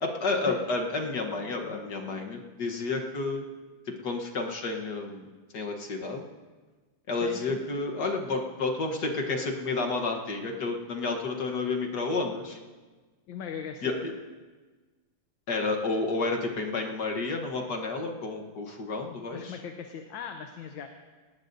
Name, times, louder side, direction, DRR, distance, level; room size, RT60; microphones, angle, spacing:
voice 1, 0.0-3.5 3.9-5.3 5.5-6.2 7.1-12.6 13.8-14.1 15.5-19.6, left 3 dB, 60° left, 1 dB, 1.8 m, -30 dB
voice 2, 7.2-7.6 13.3-14.0 19.3-20.9, left 7 dB, 75° left, 5 dB, 1.6 m, -39 dB
19.5 x 18.0 x 2.7 m, 1.3 s
omnidirectional pair, 2.1 m